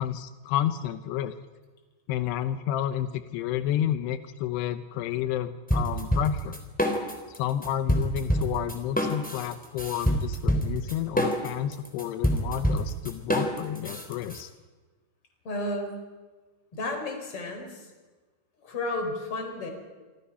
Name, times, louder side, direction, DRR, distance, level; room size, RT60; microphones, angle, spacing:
voice 1, 0.0-1.3 2.1-6.6 7.4-14.5, left 11 dB, 85° left, 10 dB, 2.3 m, -30 dB
sound 1, 5.7-7.4 7.6-14.4, equal, ahead, 2.1 m, -26 dB
voice 2, 15.4-15.9 16.7-17.9 18.6-19.7, left 2 dB, 30° left, 4 dB, 4.6 m, -32 dB
28.5 x 25.5 x 5.7 m, 1.3 s
omnidirectional pair, 6.0 m